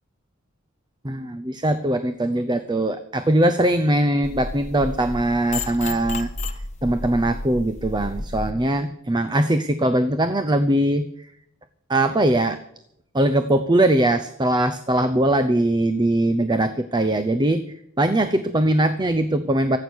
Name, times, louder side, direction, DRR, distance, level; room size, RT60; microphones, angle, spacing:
voice 1, 1.0-6.3 6.8-11.1 11.9-12.6 13.1-17.6 18.0-19.8, right 1 dB, 20° right, 10 dB, 0.8 m, -21 dB
sound 1, 4.2-8.5, left 2 dB, 35° left, 1.5 m, -32 dB
24.0 x 8.8 x 6.4 m, 0.75 s
head